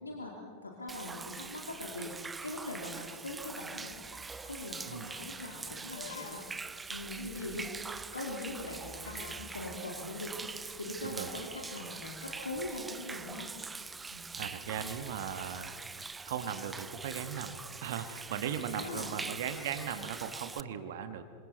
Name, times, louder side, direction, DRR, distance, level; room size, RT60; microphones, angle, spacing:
voice 1, 0.0-0.3 0.6-4.0 4.4-6.4 6.9-10.3 10.8-13.5 14.1-14.3 18.7-19.1, left 2 dB, 80° left, -1 dB, 2.8 m, -41 dB
Human voice / Rain / Stream, 0.9-20.6, right 4 dB, 10° right, 0.5 m, -43 dB
sound 1, 3.9-4.0 4.4-4.5 5.0-5.3 5.9-6.7 7.3-7.4 7.9-8.0 8.2-8.3 9.0-9.5 10.9-11.1, left 6 dB, 60° left, 1.7 m, -49 dB
voice 2, 14.4-15.7 16.2-21.2, right 8 dB, 55° right, 9 dB, 1.3 m, -38 dB
26.5 x 26.0 x 4.2 m, 2.1 s
figure-of-eight pair, 90°, 0 cm